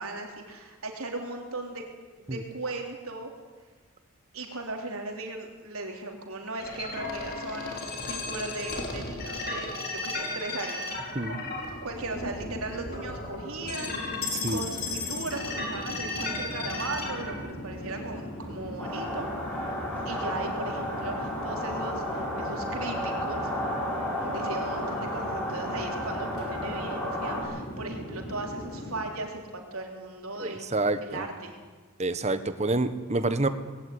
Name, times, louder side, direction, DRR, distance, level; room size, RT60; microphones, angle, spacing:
voice 1, 0.0-1.8 2.2-3.3 4.3-10.9 11.8-19.3 20.1-23.5 24.2-30.6 31.0-31.6, right 2 dB, 90° right, 2 dB, 3.8 m, -37 dB
sound 1, 6.6-17.3, left 3 dB, 45° left, 4.9 m, -35 dB
Chatter / Fixed-wing aircraft airplane, 13.6-29.0, equal, 85° left, 5.7 m, -39 dB
sound 2, 18.8-27.4, equal, 10° left, 7.4 m, -32 dB
voice 2, 30.4-31.3 32.0-33.5, right 2 dB, 30° right, 11 dB, 1.3 m, -28 dB
20.0 x 17.0 x 9.6 m, 1.4 s
head